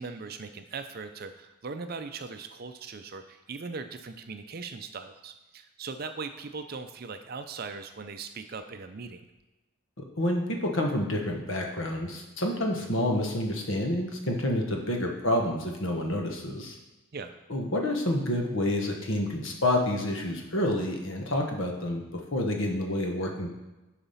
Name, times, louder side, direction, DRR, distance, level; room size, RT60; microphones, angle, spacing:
voice 1, 0.0-9.2 12.8-12.9 17.1-17.4, right 4 dB, 45° right, 8 dB, 0.5 m, -39 dB
voice 2, 10.0-16.8 17.5-22.0 22.3-23.5, left 1 dB, 60° left, 2 dB, 1.2 m, -28 dB
7.0 x 4.9 x 5.6 m, 1.1 s
head